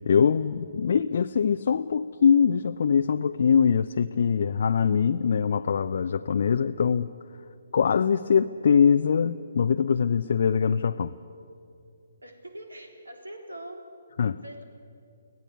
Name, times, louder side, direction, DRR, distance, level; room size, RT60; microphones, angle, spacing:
voice 1, 0.1-7.1 7.7-11.1 14.2-14.4, left 6 dB, 55° left, 8 dB, 0.6 m, -23 dB
voice 2, 12.2-13.9 14.4-14.6, right 1 dB, 80° right, 4 dB, 3.5 m, -42 dB
25.5 x 17.5 x 8.3 m, 2.5 s
figure-of-eight pair, 135°, 0 cm